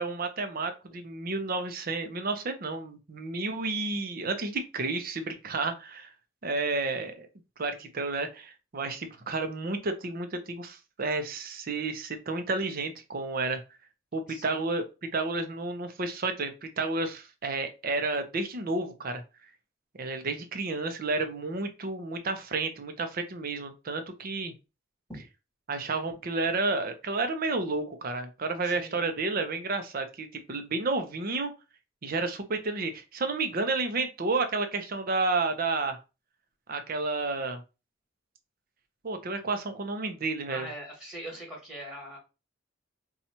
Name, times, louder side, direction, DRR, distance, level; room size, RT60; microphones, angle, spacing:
voice 1, 0.0-6.1 6.4-7.3 7.6-13.6 14.1-14.8 15.1-19.2 20.0-24.5 25.7-31.5 32.0-36.0 36.7-37.6 39.0-40.7, right 3 dB, 50° right, 7 dB, 0.6 m, -31 dB
voice 2, 14.3-14.6 25.1-25.2 28.6-29.1 40.5-42.2, equal, 5° right, -3 dB, 1.3 m, -42 dB
2.8 x 2.3 x 4.2 m, 0.29 s
head